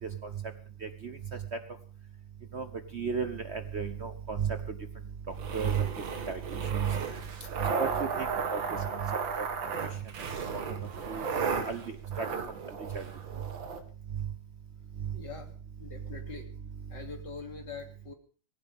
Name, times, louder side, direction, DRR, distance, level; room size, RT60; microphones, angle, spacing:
voice 1, 0.8-1.1 2.5-2.7 2.9-4.6 5.5-5.8 6.3-7.0 7.6-8.6 8.9-9.0 9.4-9.5 11.1-11.2 11.7-11.8 12.2-12.3 12.9-13.0, right 7 dB, 45° right, 8 dB, 1.1 m, -32 dB
sound 1, 5.3-13.8, right 5 dB, 85° right, 2.3 m, -35 dB
voice 2, 15.1-15.5 15.8-16.5 16.9-18.1, left 5 dB, 65° left, 2 dB, 3.6 m, -43 dB
19.5 x 16.5 x 3.6 m, 0.39 s
omnidirectional pair, 2.0 m